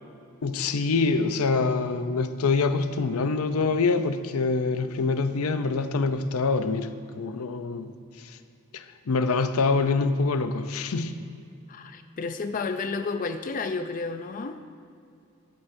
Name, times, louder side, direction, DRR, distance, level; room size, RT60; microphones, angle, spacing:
voice 1, 0.4-6.9 7.2-7.9 8.7-11.2, left 4 dB, 90° left, 10 dB, 0.5 m, -25 dB
voice 2, 11.7-14.6, left 4 dB, 40° left, 8 dB, 0.4 m, -31 dB
12.5 x 12.0 x 2.6 m, 2.4 s
head